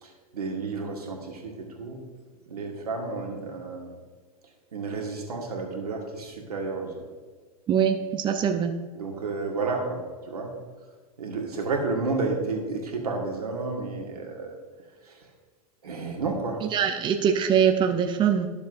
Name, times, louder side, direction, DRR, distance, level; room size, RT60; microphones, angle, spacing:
voice 1, 0.0-2.0 2.5-3.9 4.7-6.9 8.9-10.5 11.2-14.5 15.1-15.2 15.8-16.6, right 3 dB, 80° right, 1 dB, 1.8 m, -31 dB
voice 2, 7.7-8.7 16.7-18.5, right 8 dB, 25° right, 6 dB, 0.6 m, -23 dB
12.5 x 7.0 x 2.6 m, 1.4 s
hypercardioid pair, 100°, 19 cm